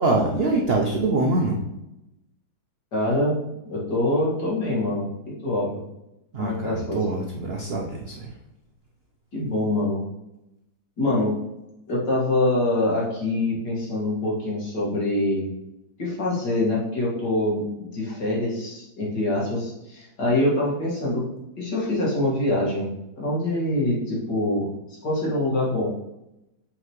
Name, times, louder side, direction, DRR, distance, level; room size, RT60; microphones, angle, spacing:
voice 1, 0.0-1.6 6.3-8.3, right 2 dB, 80° right, 0 dB, 0.5 m, -24 dB
voice 2, 2.9-3.4 3.7-5.8 6.4-7.0 9.3-10.0 11.0-11.3 11.9-15.5 16.0-21.2 21.6-22.9 23.2-24.7 25.0-25.9, left 1 dB, 60° left, -6 dB, 2.5 m, -24 dB
7.8 x 4.3 x 3.1 m, 0.90 s
omnidirectional pair, 2.0 m